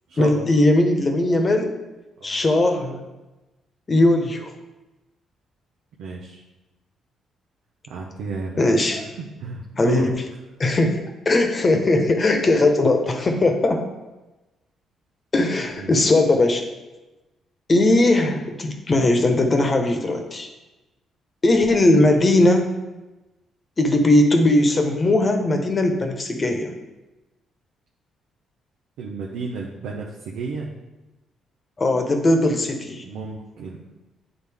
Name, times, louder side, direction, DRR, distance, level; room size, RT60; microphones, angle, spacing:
voice 1, 0.2-1.7 2.2-3.0 3.9-4.5 8.6-9.0 9.8-10.1 10.6-13.8 15.3-16.6 17.7-20.5 21.4-22.7 23.8-26.7 31.8-33.0, left 2 dB, 35° left, 4 dB, 1.1 m, -19 dB
voice 2, 6.0-6.4 7.9-8.6 8.9-9.1 9.4-10.1 15.8-15.9 29.0-30.7 33.0-33.8, right 4 dB, 90° right, -2 dB, 0.9 m, -32 dB
9.7 x 3.9 x 3.5 m, 1.1 s
cardioid pair, 90°, 0 cm